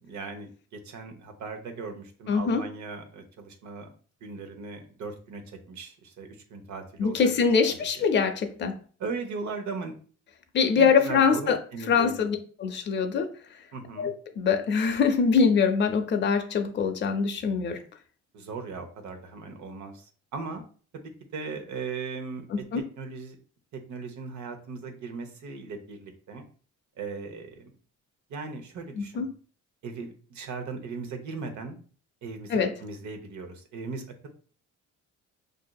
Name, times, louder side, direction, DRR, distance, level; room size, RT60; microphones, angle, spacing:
voice 1, 0.0-3.9 4.2-7.2 7.6-7.8 9.0-9.9 10.7-12.3 13.7-14.1 18.3-20.6 20.9-21.0 21.3-22.6 23.0-23.4 23.7-26.4 27.0-27.7 28.3-29.3 29.8-31.8 32.2-32.5 32.8-34.3, right 4 dB, 70° right, 0.9 m, -38 dB
voice 2, 2.3-2.6 7.0-8.8 10.5-11.6 11.9-13.3 14.0-17.8 22.7-22.8 29.0-29.3 32.5-32.7, left 5 dB, 35° left, 0.5 m, -23 dB
4.9 x 2.7 x 2.2 m
cardioid pair, 90°, 30 cm